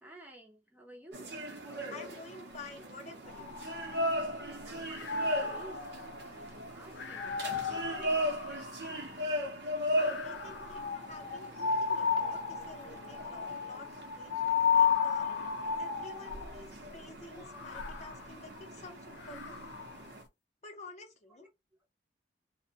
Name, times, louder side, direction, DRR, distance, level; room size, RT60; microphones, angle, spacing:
voice 1, 0.0-1.3 4.6-5.8 6.3-8.2 19.7-19.8 21.4-21.5, right 1 dB, 10° right, 0.5 m, -53 dB
sound 1, 1.1-20.2, equal, 65° right, 0.6 m, -38 dB
voice 2, 1.9-3.5 9.6-13.9 14.1-15.3 15.8-19.7 20.6-21.5, left 2 dB, 40° left, 0.6 m, -50 dB
sound 2, 3.3-4.5 4.9-9.2 9.9-16.6 17.4-20.0, left 6 dB, 80° left, 0.4 m, -34 dB
2.5 x 2.0 x 2.7 m
head